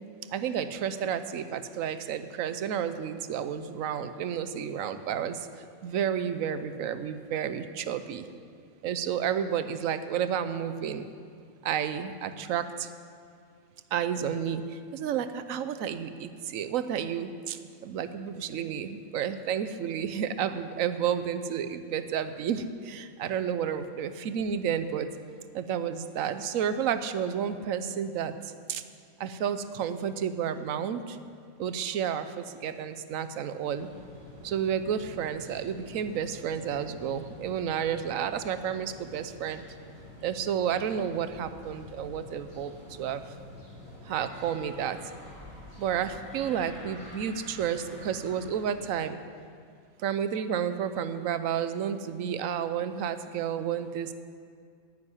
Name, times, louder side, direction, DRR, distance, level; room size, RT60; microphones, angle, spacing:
voice 1, 0.3-8.3 8.8-11.1 11.6-12.9 13.9-25.1 25.5-28.8 29.2-31.2 31.6-33.9 34.4-39.6 40.2-42.7 43.0-43.3 44.0-45.0 45.8-49.2 50.0-54.1, right 8 dB, 75° right, 11 dB, 1.1 m, -31 dB
sound 1, 33.7-48.8, left 1 dB, 20° right, 4.3 m, -48 dB
9.5 x 8.6 x 9.8 m, 2.2 s
omnidirectional pair, 1.5 m